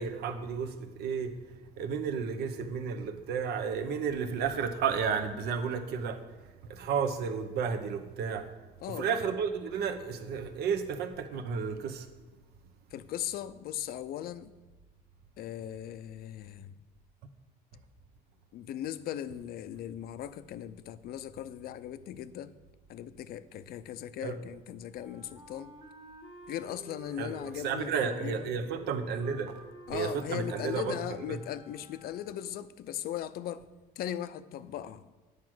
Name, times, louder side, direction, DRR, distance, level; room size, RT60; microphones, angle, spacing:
voice 1, 0.0-1.3 1.8-6.2 6.7-8.5 8.9-12.1 24.2-24.4 27.2-27.4 27.6-29.6 29.9-31.0 31.3-31.4, right 6 dB, 75° right, 0.9 m, -32 dB
voice 2, 12.9-14.5 15.4-16.8 18.5-22.5 22.9-25.7 26.5-28.6 29.9-33.7 34.0-35.1, left 11 dB, 65° left, 0.5 m, -38 dB
Wind instrument woodwind instrument, 24.9-32.6, right 1 dB, 30° right, 1.4 m, -51 dB
9.5 x 4.9 x 6.1 m
cardioid pair, 110°, 17 cm